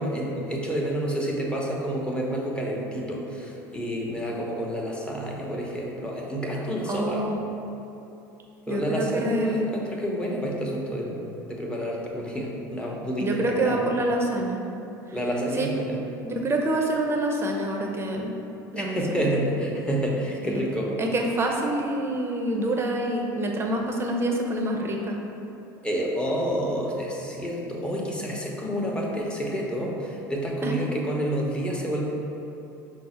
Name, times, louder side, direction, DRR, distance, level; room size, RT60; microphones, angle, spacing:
voice 1, 0.0-7.2 8.7-13.8 15.1-16.0 18.7-20.9 25.8-32.0, equal, 10° left, -3 dB, 0.8 m, -29 dB
voice 2, 6.9-7.4 8.7-9.7 13.2-14.6 15.5-15.7 16.2-18.3 18.7-19.2 20.5-20.6 21.0-25.2 30.6-30.8, right 1 dB, 25° right, 1 dB, 0.6 m, -26 dB
5.4 x 2.0 x 4.2 m, 2.9 s
hypercardioid pair, 80°, 10 cm